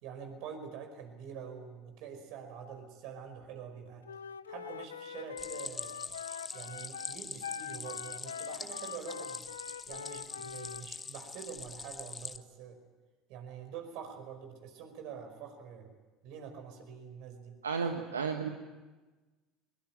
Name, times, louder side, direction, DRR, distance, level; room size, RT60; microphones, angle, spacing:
voice 1, 0.0-4.0 4.5-6.0 6.5-12.8 13.3-15.9 16.2-17.6, right 7 dB, 60° right, 5 dB, 5.1 m, -46 dB
Wind instrument woodwind instrument, 4.1-10.9, left 7 dB, 80° left, 0.7 m, -43 dB
Stream, 5.4-12.4, left 4 dB, 25° left, 1.3 m, -44 dB
voice 2, 17.6-18.5, right 5 dB, 85° right, 5 dB, 1.4 m, -33 dB
22.0 x 21.5 x 9.4 m, 1.2 s
figure-of-eight pair, 70°, 0 cm